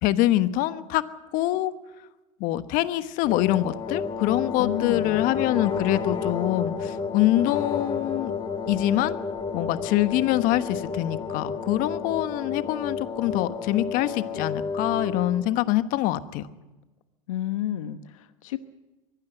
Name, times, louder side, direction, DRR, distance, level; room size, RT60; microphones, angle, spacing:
voice 1, 0.0-1.0 1.3-1.7 2.4-8.3 8.7-9.2 9.5-16.5, left 15 dB, 55° left, 12 dB, 1.2 m, -25 dB
sound 1, 3.2-15.5, left 5 dB, 25° left, 2.2 m, -31 dB
voice 2, 4.6-5.3 17.3-18.6, left 12 dB, 80° left, 11 dB, 1.0 m, -31 dB
22.5 x 16.5 x 8.1 m, 1.1 s
hypercardioid pair, 90°, 17 cm